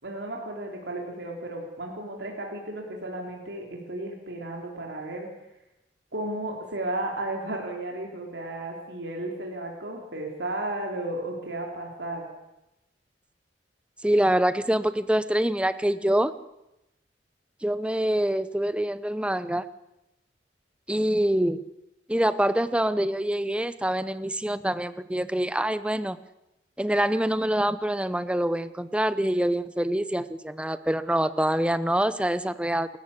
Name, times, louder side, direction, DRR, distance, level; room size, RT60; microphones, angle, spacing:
voice 1, 0.0-5.3 6.1-12.2, right 1 dB, 75° right, 0 dB, 3.7 m, -34 dB
voice 2, 14.0-16.3 17.6-19.7 20.9-21.6 22.1-26.2 26.8-32.9, right 1 dB, 5° right, 14 dB, 0.7 m, -25 dB
28.0 x 14.0 x 8.4 m, 0.92 s
head